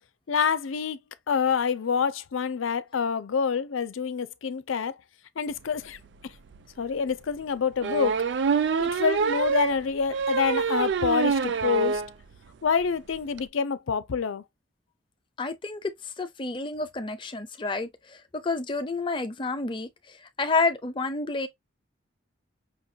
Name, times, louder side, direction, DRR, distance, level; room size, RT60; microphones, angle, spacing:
voice 1, 0.3-1.0 1.3-4.9 5.4-6.0 6.8-8.2 8.8-12.0 12.6-14.4, left 6 dB, 85° left, 0.5 m, -27 dB
sound 1, 6.1-6.2 6.5-6.6 7.8-12.1 12.5-12.6 12.8-12.9 13.1-13.4, right 5 dB, 65° right, 0.3 m, -26 dB
voice 2, 15.4-21.5, left 3 dB, 25° left, 0.5 m, -30 dB
5.7 x 2.3 x 2.7 m
head